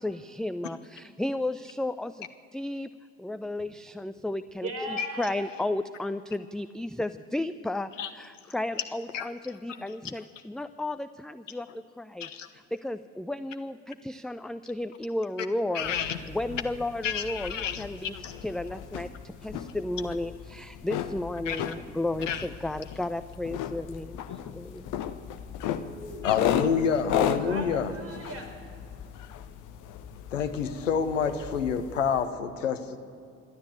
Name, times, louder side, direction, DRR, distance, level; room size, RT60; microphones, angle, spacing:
voice 1, 0.0-2.9 3.2-4.7 5.2-12.3 12.5-15.9 16.3-24.9 26.0-26.3, left 1 dB, ahead, 11 dB, 0.5 m, -33 dB
voice 2, 4.6-5.5 25.7-26.5 27.4-28.6, right 1 dB, 40° right, 5 dB, 4.6 m, -39 dB
voice 3, 15.7-16.2 17.0-17.9 18.1-18.3 21.5-21.7 22.3-22.5 26.2-27.9 30.3-33.0, left 7 dB, 75° left, 9 dB, 1.2 m, -28 dB
sound 1, 15.8-32.3, left 9 dB, 50° left, 1.2 m, -36 dB
25.5 x 12.5 x 8.2 m, 2.4 s
figure-of-eight pair, 50°, 38 cm